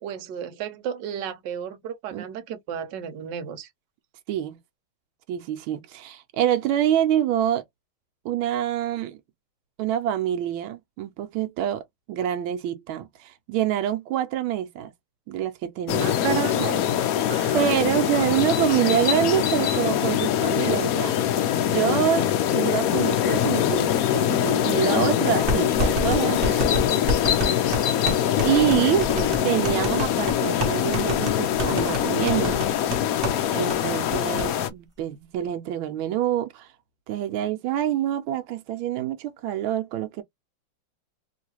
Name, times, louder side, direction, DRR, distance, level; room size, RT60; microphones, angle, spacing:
voice 1, 0.0-3.7 16.0-16.8 17.3-17.7 29.1-29.5, right 9 dB, 65° right, 1.3 m, -32 dB
voice 2, 4.3-4.6 5.3-7.6 8.2-9.2 9.8-14.9 15.3-16.2 17.5-21.1 21.6-26.8 27.4-27.6 28.4-29.1 29.4-32.7 33.5-36.7 37.1-40.2, right 11 dB, 85° right, 1.4 m, -26 dB
sound 1, 15.9-34.7, left 10 dB, 85° left, 0.8 m, -23 dB
sound 2, 25.5-33.4 33.7-33.8 34.1-34.5, left 1 dB, 35° right, 0.9 m, -28 dB
3.1 x 3.0 x 2.8 m
omnidirectional pair, 2.2 m